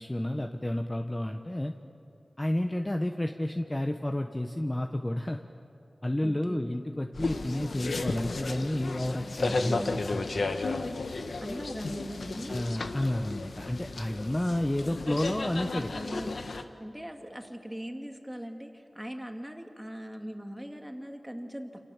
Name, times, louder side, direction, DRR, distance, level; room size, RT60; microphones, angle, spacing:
voice 1, 0.0-1.7 2.4-5.4 6.0-10.2 12.5-15.9, left 1 dB, 20° left, 4 dB, 1.1 m, -31 dB
voice 2, 6.2-6.7 9.4-10.0 11.4-12.6 15.9-16.4 16.8-21.7, equal, 5° right, 3 dB, 2.7 m, -40 dB
sound 1, 7.1-16.6, left 3 dB, 80° left, 1.5 m, -34 dB
28.0 x 28.0 x 7.4 m, 2.7 s
wide cardioid pair, 80°, 0 cm